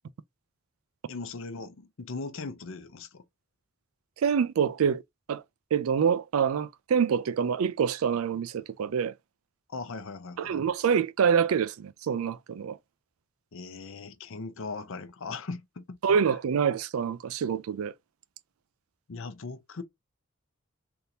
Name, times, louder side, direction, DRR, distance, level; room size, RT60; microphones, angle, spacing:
voice 1, 1.1-3.2 9.7-10.6 13.5-16.0 19.1-19.8, left 4 dB, 65° left, 0.6 m, -39 dB
voice 2, 4.2-5.0 5.3-5.4 5.7-9.1 10.4-12.8 16.0-17.9, right 7 dB, 80° right, 0.4 m, -26 dB
3.4 x 2.8 x 2.6 m
head